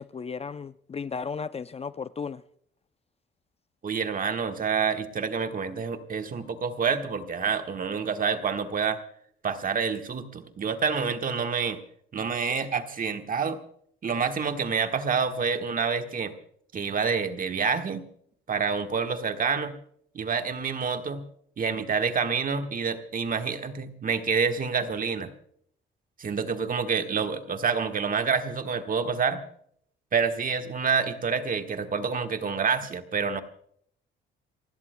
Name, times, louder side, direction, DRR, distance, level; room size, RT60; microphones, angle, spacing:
voice 1, 0.0-2.4, left 5 dB, 30° left, 0.5 m, -35 dB
voice 2, 3.8-9.0 9.4-11.8 12.1-13.6 14.0-16.3 16.7-18.0 18.5-19.8 20.1-21.2 21.6-25.3 26.2-29.4 30.1-33.4, right 5 dB, 40° right, 1.4 m, -28 dB
29.0 x 16.0 x 2.2 m
cardioid pair, 95°, 21 cm